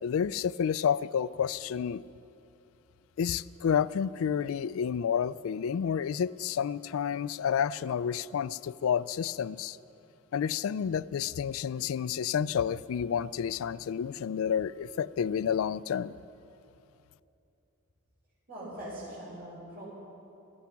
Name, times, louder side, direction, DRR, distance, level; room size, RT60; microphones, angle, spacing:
voice 1, 0.0-2.0 3.2-9.8 10.3-16.1, left 8 dB, 75° left, 18 dB, 0.3 m, -30 dB
voice 2, 18.5-19.9, right 1 dB, 55° right, -10 dB, 4.5 m, -42 dB
16.5 x 14.0 x 5.8 m, 2.8 s
head